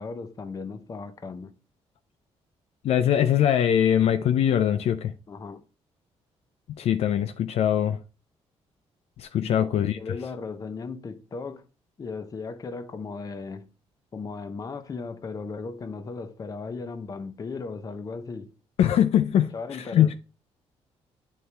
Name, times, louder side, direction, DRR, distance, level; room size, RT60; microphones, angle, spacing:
voice 1, 0.0-1.5 5.3-5.6 9.4-11.6 12.0-13.7 14.1-18.5 19.5-20.1, left 4 dB, 30° left, 0.8 m, -36 dB
voice 2, 2.8-5.1 6.8-8.0 9.2-10.0 18.8-19.5 19.9-20.1, left 10 dB, 65° left, 0.5 m, -22 dB
9.4 x 4.2 x 3.4 m
cardioid pair, 130°, 11 cm